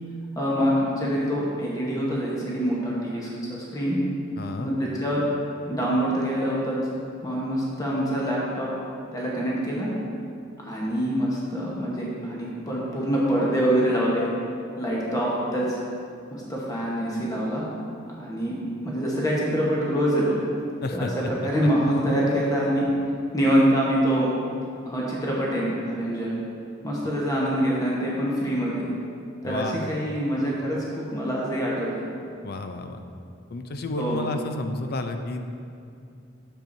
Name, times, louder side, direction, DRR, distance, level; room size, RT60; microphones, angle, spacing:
voice 1, 0.4-4.0 4.6-5.2 5.7-6.8 7.2-8.7 9.1-9.9 10.6-14.3 14.8-15.8 16.3-17.7 18.2-18.6 18.8-20.4 20.9-22.9 23.3-24.3 24.9-26.3 26.8-28.9 29.4-32.0 34.0-34.2, equal, 20° left, -5 dB, 1.1 m, -25 dB
voice 2, 4.4-4.7 20.8-21.1 29.4-29.7 32.4-33.0 33.5-35.4, left 2 dB, 55° left, 6 dB, 0.5 m, -31 dB
9.0 x 6.7 x 2.7 m, 2.4 s
head